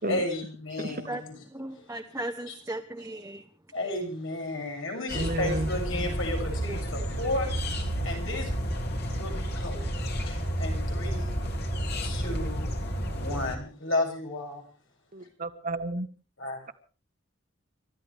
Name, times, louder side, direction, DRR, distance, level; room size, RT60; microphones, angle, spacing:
voice 1, 0.0-1.5 1.9-2.0 2.5-2.6 3.7-7.5 8.0-11.4 12.0-12.7 13.1-14.6 16.4-16.6, left 2 dB, 80° left, 1 dB, 7.2 m, -33 dB
voice 2, 1.5-3.4, right 1 dB, 15° right, 3 dB, 1.1 m, -36 dB
sound 1, 5.1-13.6, equal, 55° left, 2.9 m, -31 dB
voice 3, 5.1-5.7 15.1-16.1, right 2 dB, 45° right, 10 dB, 1.5 m, -31 dB
30.0 x 13.0 x 3.5 m, 0.37 s
head